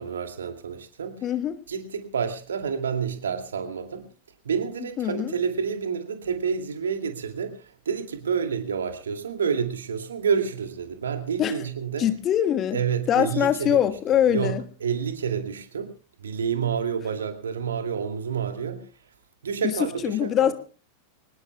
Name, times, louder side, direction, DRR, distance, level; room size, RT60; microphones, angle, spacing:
voice 1, 0.0-1.2 1.7-4.1 4.4-12.0 12.7-13.8 14.3-14.5 14.8-15.9 16.2-18.9 19.4-20.5, right 6 dB, 65° right, 7 dB, 2.4 m, -29 dB
voice 2, 1.2-1.6 5.0-5.3 11.4-11.6 12.0-12.8 13.1-14.6 19.6-20.5, left 10 dB, 30° left, 9 dB, 1.4 m, -23 dB
24.5 x 19.5 x 2.3 m, 0.38 s
figure-of-eight pair, 90°, 0 cm